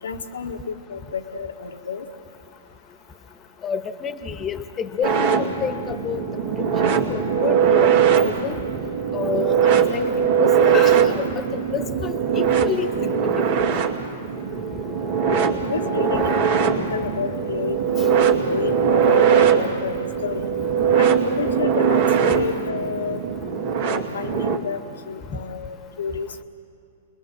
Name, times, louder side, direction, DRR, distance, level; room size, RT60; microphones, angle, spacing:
voice 1, 0.0-2.1 15.6-17.8 18.1-20.5 21.0-23.2 23.8-26.4, left 5 dB, 90° left, 5 dB, 1.7 m, -30 dB
voice 2, 3.6-6.2 6.6-8.6 9.1-13.1, left 6 dB, 25° left, 9 dB, 1.4 m, -29 dB
sound 1, 5.0-24.6, right 7 dB, 60° right, 2.5 m, -21 dB
29.0 x 21.5 x 7.6 m, 2.6 s
hypercardioid pair, 125°, 0 cm